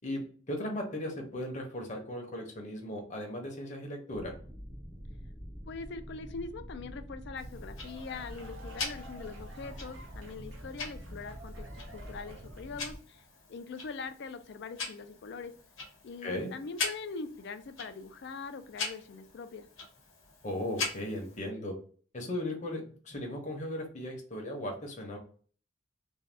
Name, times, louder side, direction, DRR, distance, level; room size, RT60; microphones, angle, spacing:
voice 1, 0.5-4.4 16.2-16.5 20.4-21.7 22.1-25.2, left 1 dB, 40° left, 1 dB, 0.8 m, -37 dB
sound 1, 4.1-13.0, equal, 25° right, 0.6 m, -46 dB
voice 2, 5.7-13.2 13.5-15.5 16.0-19.7, left 4 dB, 60° left, 10 dB, 0.4 m, -42 dB
Tick-tock, 7.4-21.4, left 4 dB, 90° left, 1.0 m, -42 dB
sound 2, 7.5-12.9, right 2 dB, 75° right, 0.7 m, -53 dB
2.6 x 2.2 x 3.3 m, 0.44 s
head